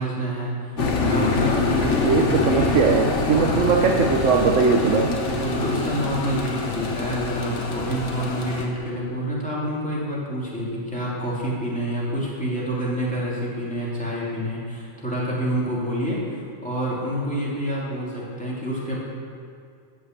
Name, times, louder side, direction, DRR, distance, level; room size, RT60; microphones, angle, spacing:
voice 1, 0.0-2.7 3.3-3.7 5.2-19.0, equal, 5° left, -7 dB, 3.1 m, -28 dB
sound 1, 0.8-8.7, left 3 dB, 60° left, 1.6 m, -25 dB
voice 2, 2.0-5.2, right 5 dB, 70° right, 2 dB, 1.1 m, -20 dB
14.0 x 6.0 x 8.1 m, 2.3 s
omnidirectional pair, 1.4 m